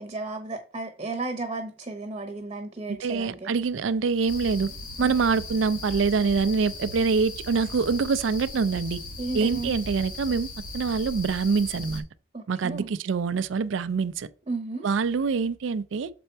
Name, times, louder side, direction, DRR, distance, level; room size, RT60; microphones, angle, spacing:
voice 1, 0.0-3.5 5.0-5.2 9.2-9.7 12.3-12.9 14.5-14.8, right 3 dB, 30° right, 0.9 m, -33 dB
voice 2, 2.9-4.7 5.0-9.0 9.3-10.5 10.7-12.0 12.5-14.3 14.8-16.1, right 5 dB, 80° right, 0.4 m, -25 dB
sound 1, 4.3-12.0, left 2 dB, 50° left, 1.3 m, -38 dB
6.8 x 4.3 x 4.4 m
head